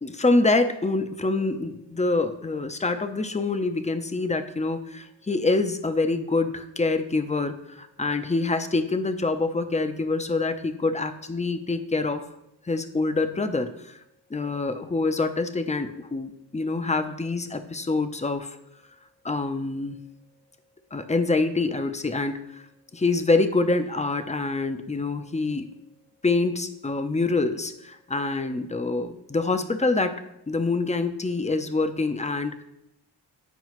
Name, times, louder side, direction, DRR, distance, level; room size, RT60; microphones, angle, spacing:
voice 1, 0.0-12.2 12.7-13.7 14.3-18.6 19.2-20.0 20.9-22.6 22.9-25.7 26.2-30.2 30.5-32.6, left 3 dB, 15° left, 9 dB, 0.6 m, -26 dB
9.1 x 4.7 x 3.1 m, 0.81 s
cardioid pair, 45°, 46 cm